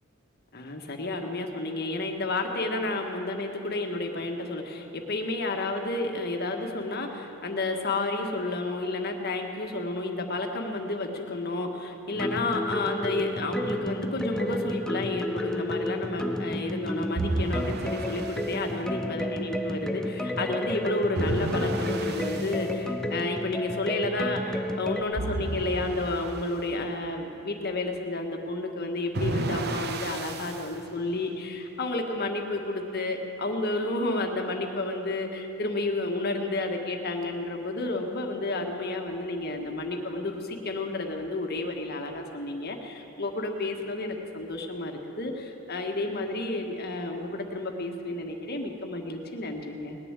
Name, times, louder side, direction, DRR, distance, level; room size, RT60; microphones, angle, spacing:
voice 1, 0.5-50.0, left 2 dB, 50° left, 3 dB, 1.5 m, -31 dB
sound 1, 12.2-25.0, left 1 dB, 5° left, 0.5 m, -31 dB
sound 2, 17.2-18.6 21.1-22.7 25.2-26.5 29.1-30.7, right 2 dB, 50° right, 0.8 m, -32 dB
19.0 x 7.0 x 9.7 m, 3.0 s
head